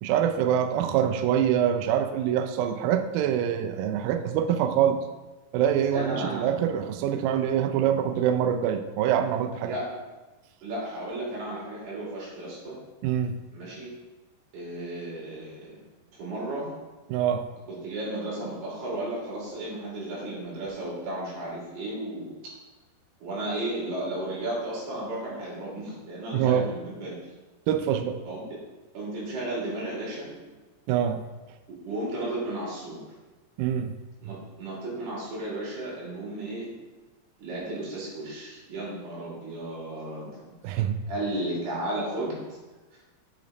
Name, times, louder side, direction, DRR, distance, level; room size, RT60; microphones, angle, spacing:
voice 1, 0.0-5.0 5.5-9.8 13.0-13.4 17.1-17.4 26.3-26.7 27.7-28.2 30.9-31.2 33.6-33.9 34.2-34.4 40.6-41.0, right 9 dB, 90° right, 7 dB, 2.1 m, -25 dB
voice 2, 5.9-6.5 9.6-9.9 10.6-12.8 13.5-13.9 14.5-15.8 16.1-16.8 17.7-22.4 23.2-27.1 28.2-28.5 28.9-30.5 31.8-33.0 34.2-36.7 37.4-40.4 40.6-40.8 41.1-42.4, right 1 dB, 70° right, -6 dB, 4.9 m, -34 dB
8.4 x 5.9 x 4.0 m, 1.2 s
omnidirectional pair, 4.9 m